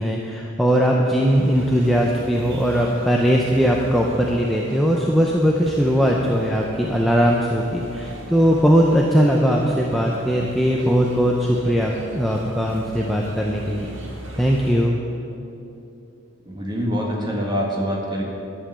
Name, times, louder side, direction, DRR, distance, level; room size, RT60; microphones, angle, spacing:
voice 1, 0.0-13.9 14.4-15.0, equal, ahead, -2 dB, 0.6 m, -19 dB
sound 1, 1.0-14.7, right 1 dB, 65° right, 1.7 m, -38 dB
voice 2, 16.5-18.2, equal, 20° right, -2 dB, 1.8 m, -25 dB
11.5 x 7.7 x 7.5 m, 2.8 s
head